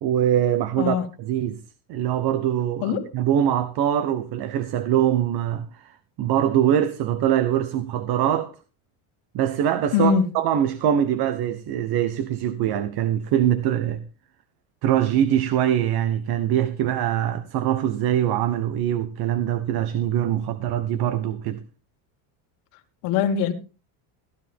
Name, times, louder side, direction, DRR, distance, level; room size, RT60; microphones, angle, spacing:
voice 1, 0.0-1.6 1.9-8.5 9.3-14.0 14.8-21.6, right 10 dB, 55° right, 1.2 m, -23 dB
voice 2, 9.9-10.2 23.0-23.5, left 7 dB, 90° left, 2.2 m, -21 dB
16.0 x 11.5 x 3.6 m
cardioid pair, 135°, 44 cm